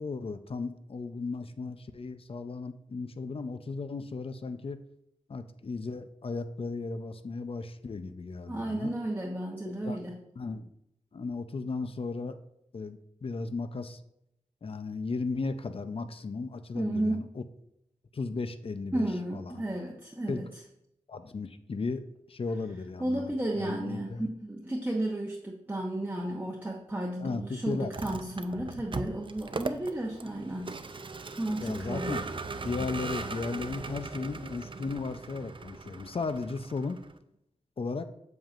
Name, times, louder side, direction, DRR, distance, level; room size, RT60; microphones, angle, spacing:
voice 1, 0.0-4.8 5.3-8.9 9.8-10.0 10.4-10.7 11.1-12.4 12.7-14.0 14.6-17.4 18.1-19.6 20.3-20.4 21.1-22.0 22.3-24.2 27.2-27.9 31.6-32.3 32.6-37.0 37.8-38.1, left 4 dB, 45° left, 10 dB, 0.5 m, -35 dB
voice 2, 8.5-10.2 16.7-17.2 18.9-20.5 23.0-30.8 31.4-32.2, right 1 dB, 15° right, -3 dB, 0.9 m, -33 dB
Vehicle, 27.8-37.2, right 4 dB, 40° right, 0.5 m, -39 dB
7.8 x 7.3 x 2.5 m, 0.78 s
wide cardioid pair, 85°, 13 cm